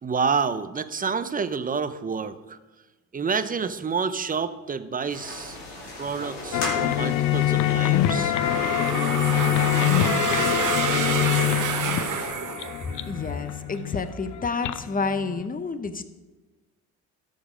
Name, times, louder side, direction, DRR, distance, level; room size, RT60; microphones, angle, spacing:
voice 1, 0.0-2.6 3.1-5.6 6.0-8.4, right 5 dB, 20° right, 12 dB, 0.7 m, -28 dB
sound 1, 5.1-12.3, left 2 dB, 90° left, 2.7 m, -37 dB
sound 2, 6.5-15.5, left 12 dB, 50° left, 0.6 m, -25 dB
sound 3, 8.3-13.2, right 7 dB, 50° right, 1.1 m, -28 dB
voice 2, 13.1-16.0, left 4 dB, 20° left, 11 dB, 0.8 m, -29 dB
13.0 x 5.4 x 5.1 m, 1.2 s
hypercardioid pair, 65°, 40 cm